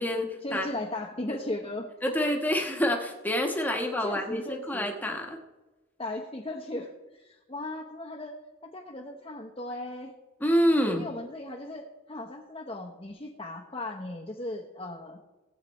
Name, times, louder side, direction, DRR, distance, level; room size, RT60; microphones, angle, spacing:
voice 1, 0.4-2.3 3.8-4.9 6.0-8.4 8.6-10.1 11.0-15.2, left 1 dB, 30° left, -1 dB, 0.9 m, -37 dB
voice 2, 2.0-5.4 10.4-11.0, equal, 10° left, 2 dB, 1.2 m, -27 dB
18.0 x 8.2 x 3.1 m, 1.1 s
head